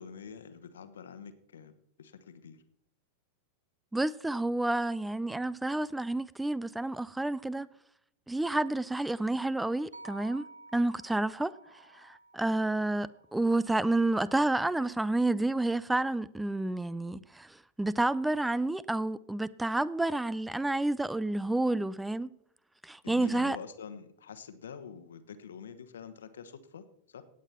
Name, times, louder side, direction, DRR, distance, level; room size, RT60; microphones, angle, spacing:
voice 1, 0.0-1.7 2.0-2.6 23.0-27.2, left 7 dB, 65° left, 1.2 m, -46 dB
voice 2, 3.9-7.7 8.3-10.5 10.7-11.5 11.9-22.3 22.8-23.6, right 2 dB, 5° right, 0.4 m, -30 dB
sound 1, 9.9-14.1, right 2 dB, 75° right, 0.8 m, -53 dB
17.0 x 9.0 x 4.3 m
figure-of-eight pair, 90°, 0 cm